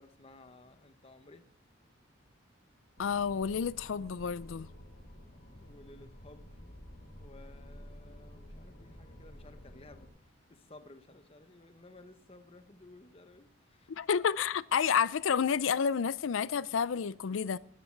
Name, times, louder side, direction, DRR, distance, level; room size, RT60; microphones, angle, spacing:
voice 1, 0.0-1.5 5.6-6.7 7.1-10.2 10.5-13.9, left 2 dB, 30° left, 0.9 m, -56 dB
voice 2, 3.0-4.7 13.9-17.6, left 7 dB, 80° left, 0.4 m, -30 dB
sound 1, 3.0-10.1, equal, 60° left, 2.7 m, -51 dB
13.5 x 11.0 x 4.6 m
head